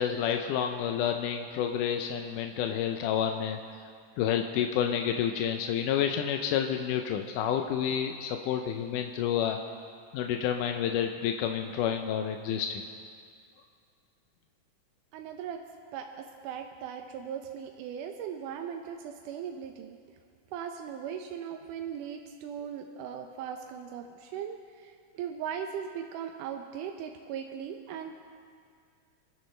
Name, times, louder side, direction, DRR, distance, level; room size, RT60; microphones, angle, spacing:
voice 1, 0.0-3.6 4.2-9.6 10.1-12.8, left 9 dB, 90° left, 4 dB, 2.3 m, -29 dB
voice 2, 15.1-15.6 15.9-20.0 20.5-28.2, right 8 dB, 85° right, 3 dB, 2.3 m, -38 dB
26.5 x 12.0 x 3.3 m, 2.2 s
omnidirectional pair, 3.6 m